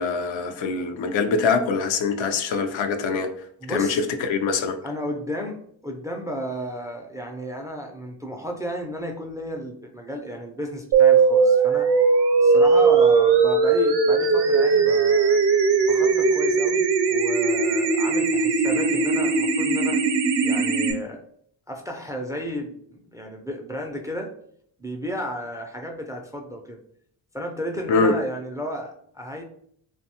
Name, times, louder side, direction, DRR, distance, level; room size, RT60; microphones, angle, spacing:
voice 1, 0.0-3.3 3.7-4.8 27.9-28.1, left 4 dB, 75° left, 0.5 m, -23 dB
voice 2, 3.6-4.0 4.8-12.0 12.4-15.4 15.9-20.0 20.4-21.2 21.7-24.3 24.8-26.8 27.3-29.4, equal, 10° right, 0.3 m, -33 dB
sound 1, 10.9-20.9, right 4 dB, 65° right, 0.6 m, -19 dB
2.6 x 2.2 x 2.8 m
cardioid pair, 70°, 46 cm